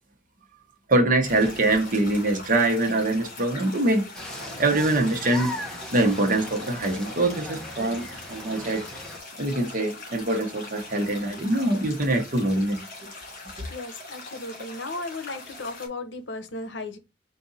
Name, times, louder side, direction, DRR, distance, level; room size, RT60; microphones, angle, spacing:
voice 1, 0.9-4.3 4.6-5.5 5.9-8.9 9.4-13.1, right 2 dB, 50° right, 1.0 m, -24 dB
sound 1, 1.2-15.9, left 2 dB, 55° left, 2.6 m, -42 dB
sound 2, 4.1-9.2, equal, 5° left, 0.9 m, -38 dB
voice 2, 13.7-17.0, left 2 dB, 80° left, 0.8 m, -35 dB
4.7 x 2.6 x 4.0 m
head